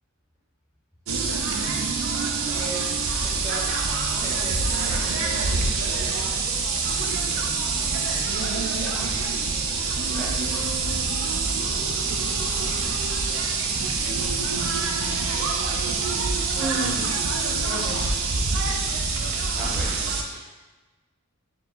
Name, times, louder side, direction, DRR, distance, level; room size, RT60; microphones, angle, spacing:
sound 1, 1.1-20.2, right 4 dB, 65° right, 0.4 m, -25 dB
voice 1, 2.4-3.0 3.2-3.6 4.2-6.3 15.3-15.6 16.5-18.0, right 2 dB, 30° right, -5 dB, 1.0 m, -36 dB
voice 2, 8.7-9.3 9.7-11.2 11.5-13.1 13.8-13.9 15.4-15.5 17.9-18.1 19.6-20.6, equal, 5° right, -8 dB, 0.6 m, -41 dB
4.5 x 2.0 x 3.8 m, 1.2 s
head